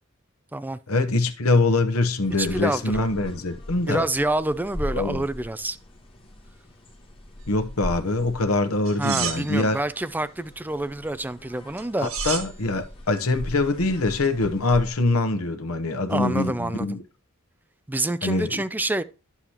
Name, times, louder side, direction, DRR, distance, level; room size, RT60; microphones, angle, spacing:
voice 1, 0.9-4.1 4.9-5.2 7.5-9.8 12.0-17.0 18.2-18.6, left 2 dB, 90° left, 1.0 m, -24 dB
sound 1, 2.2-14.9, left 1 dB, 25° left, 2.0 m, -39 dB
voice 2, 2.4-3.1 3.9-5.8 9.0-12.1 16.1-17.0 17.9-19.0, right 2 dB, 10° right, 0.4 m, -27 dB
sound 2, 8.9-9.8 11.8-12.6 14.2-14.4, right 8 dB, 75° right, 1.8 m, -31 dB
9.8 x 7.0 x 2.9 m
head